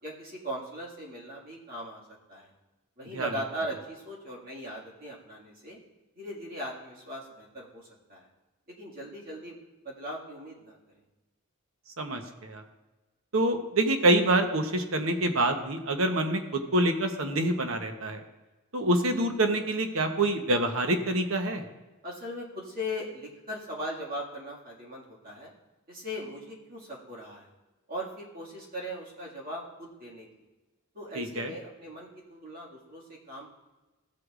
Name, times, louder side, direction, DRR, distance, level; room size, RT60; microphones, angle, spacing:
voice 1, 0.0-2.0 2.3-2.5 3.0-5.8 6.2-8.3 8.8-9.6 9.8-10.8 22.0-25.5 25.9-27.5 27.9-30.3 30.9-33.5, equal, 45° right, -4 dB, 2.0 m, -39 dB
voice 2, 12.0-12.6 13.3-18.2 18.7-21.6 31.1-31.5, right 1 dB, 70° right, 6 dB, 1.0 m, -26 dB
15.0 x 8.0 x 2.5 m, 1.1 s
head